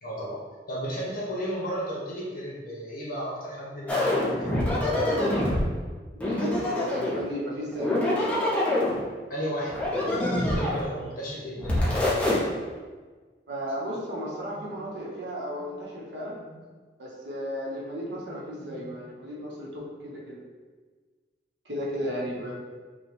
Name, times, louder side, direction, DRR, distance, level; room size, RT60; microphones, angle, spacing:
voice 1, 0.0-0.4 0.7-5.3 9.3-12.4 14.5-14.9 15.6-15.7 16.5-16.6 18.2-18.9 22.3-22.5, equal, 55° left, -5 dB, 1.3 m, -35 dB
sound 1, 3.9-5.6 6.2-7.3 7.7-9.0 9.7-10.9 11.6-12.4, left 1 dB, 10° left, 1.0 m, -25 dB
voice 2, 6.2-8.5 13.5-16.4 17.0-20.4 21.6-22.5, equal, 85° right, -4 dB, 1.1 m, -34 dB
5.6 x 2.4 x 3.4 m, 1.4 s
head